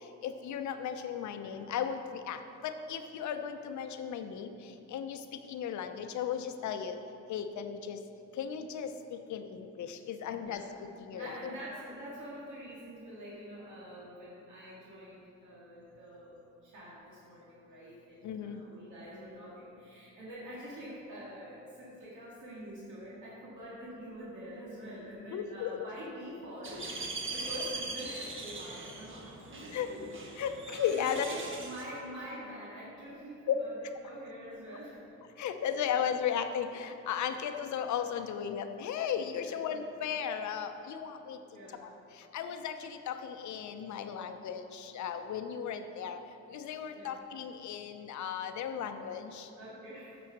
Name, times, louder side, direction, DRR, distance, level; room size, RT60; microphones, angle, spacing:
voice 1, 0.2-4.5 4.9-5.2 5.5-7.0 7.3-8.0 8.4-10.6 11.0-11.3 18.2-18.6 25.3-25.9 29.7-29.9 30.4-31.2 33.5-33.6 35.4-41.4 41.8-41.9 42.3-46.2 46.5-49.5, left 8 dB, 70° left, 7 dB, 0.7 m, -35 dB
voice 2, 10.2-10.7 11.1-16.4 16.6-30.1 30.9-33.8 34.0-35.0 38.1-38.2 39.3-39.6 41.2-41.9 46.9-47.2 49.6-50.2, equal, 75° right, -8 dB, 2.3 m, -46 dB
sound 1, 26.6-31.9, right 3 dB, 40° right, 1.3 m, -41 dB
8.8 x 6.1 x 6.0 m, 2.7 s
cardioid pair, 90°, 30 cm